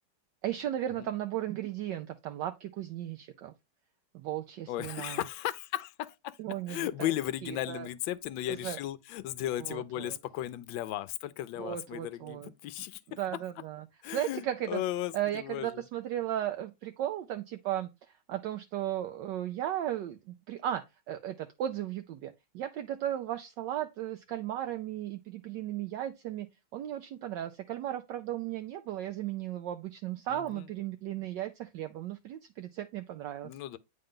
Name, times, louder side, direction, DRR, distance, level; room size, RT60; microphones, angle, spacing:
voice 1, 0.4-3.5 4.1-5.2 6.4-7.1 7.4-7.9 8.5-8.8 9.6-10.2 11.6-12.5 13.2-14.8 15.1-26.5 26.7-33.5, right 12 dB, 75° right, 1.1 m, -36 dB
voice 2, 4.7-6.4 6.7-13.0 14.0-15.7 30.3-30.6 33.4-33.8, left 13 dB, 80° left, 1.3 m, -35 dB
8.9 x 3.8 x 3.6 m
omnidirectional pair, 2.2 m